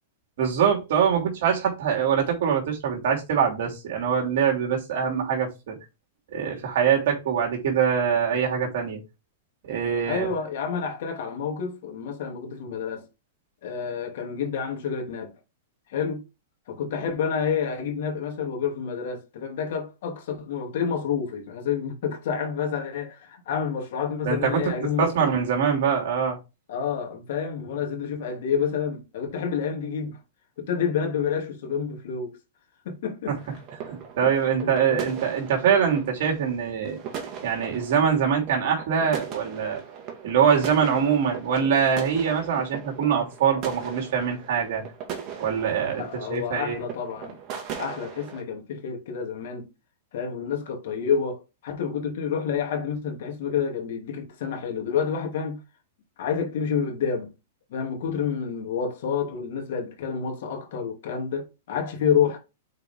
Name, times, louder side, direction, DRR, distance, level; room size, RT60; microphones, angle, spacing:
voice 1, 0.4-5.8 6.3-9.0 9.6-10.3 24.2-24.7 25.0-26.4 33.9-37.0 37.4-39.8 40.2-44.8 45.4-46.9, right 7 dB, 60° right, 2.9 m, -23 dB
voice 2, 10.1-13.0 13.6-15.3 15.9-16.2 16.7-25.3 26.7-30.2 30.6-32.4 32.8-33.3 34.6-35.0 45.9-47.4 47.8-49.7 50.1-55.6 56.2-57.3 57.7-62.4, left 7 dB, 65° left, 2.8 m, -29 dB
sound 1, 33.4-48.4, right 7 dB, 30° right, 1.9 m, -39 dB
6.6 x 4.6 x 3.7 m
supercardioid pair, 150°, 0 cm